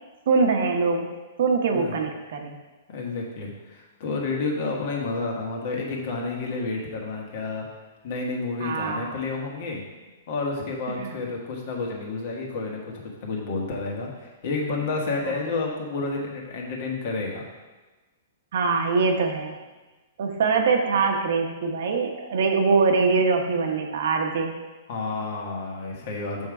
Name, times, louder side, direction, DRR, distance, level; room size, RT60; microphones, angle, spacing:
voice 1, 0.3-1.1 1.4-2.6 8.6-9.1 11.0-11.2 18.5-19.6 20.2-24.5, right 4 dB, 70° right, 4 dB, 0.9 m, -23 dB
voice 2, 2.9-7.7 8.0-9.8 10.3-12.9 13.2-17.5 24.9-26.5, left 3 dB, 55° left, -1 dB, 1.6 m, -30 dB
7.1 x 3.7 x 4.9 m, 1.2 s
hypercardioid pair, 135°, 0 cm